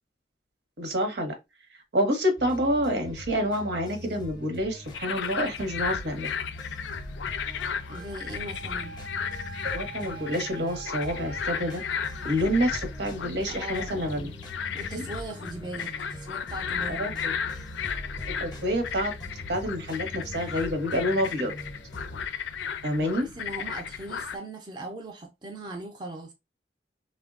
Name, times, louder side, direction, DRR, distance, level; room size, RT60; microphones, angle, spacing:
voice 1, 0.8-1.4 1.7-6.3 9.6-11.8 12.2-14.3 14.9-15.0 16.9-17.3 18.4-19.1 19.5-21.5 22.8-23.3, equal, 70° right, 0.9 m, -28 dB
sound 1, 2.4-22.3, left 1 dB, 25° left, 0.6 m, -42 dB
sound 2, 4.8-24.4, left 7 dB, 85° left, 0.4 m, -35 dB
voice 2, 7.9-9.0 13.5-14.3 14.7-17.3 23.4-26.3, right 2 dB, 25° right, 0.4 m, -39 dB
Wind instrument woodwind instrument, 7.9-12.9, right 4 dB, 90° right, 0.4 m, -45 dB
3.3 x 2.1 x 2.3 m
head